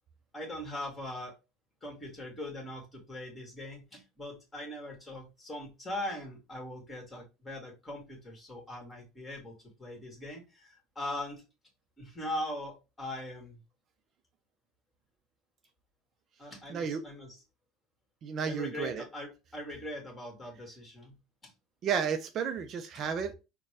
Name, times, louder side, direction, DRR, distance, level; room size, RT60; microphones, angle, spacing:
voice 1, 0.3-1.3 1.8-11.4 12.0-13.6 16.4-17.4 18.4-21.2 21.4-21.5, left 1 dB, 20° left, 1 dB, 1.9 m, -41 dB
voice 2, 16.7-17.0 18.2-19.0 21.8-23.4, right 7 dB, 45° right, 7 dB, 0.5 m, -32 dB
4.0 x 2.2 x 3.3 m, 0.28 s
supercardioid pair, 100°, 0 cm